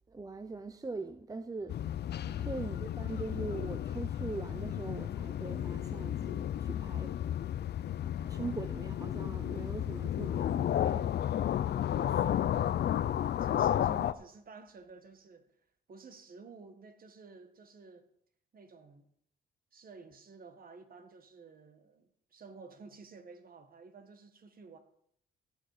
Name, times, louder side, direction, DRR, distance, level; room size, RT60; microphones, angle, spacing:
voice 1, 0.1-1.7 2.5-7.1 8.3-11.1 11.9-12.9, right 3 dB, 20° right, 0.6 m, -42 dB
sound 1, 1.7-14.1, left 11 dB, 55° left, 0.6 m, -33 dB
voice 2, 2.2-2.6 8.1-8.6 12.1-15.5 15.9-18.1 18.5-19.0 19.7-24.8, right 4 dB, 45° right, 1.8 m, -53 dB
16.0 x 6.9 x 5.1 m
cardioid pair, 90°, 20 cm